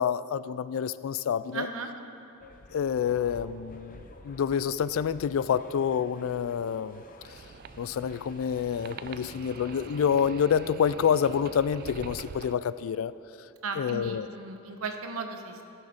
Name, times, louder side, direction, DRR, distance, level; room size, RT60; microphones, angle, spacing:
voice 1, 0.0-1.7 2.7-7.0 7.8-13.1 13.8-14.3, left 7 dB, 70° left, 16 dB, 0.3 m, -28 dB
voice 2, 1.5-1.9 13.6-15.6, right 4 dB, 85° right, 5 dB, 0.9 m, -36 dB
sound 1, 2.4-12.3, left 2 dB, 40° left, 0.7 m, -51 dB
sound 2, 7.2-12.6, right 6 dB, 45° right, 0.3 m, -46 dB
15.0 x 6.4 x 5.1 m, 2.8 s
head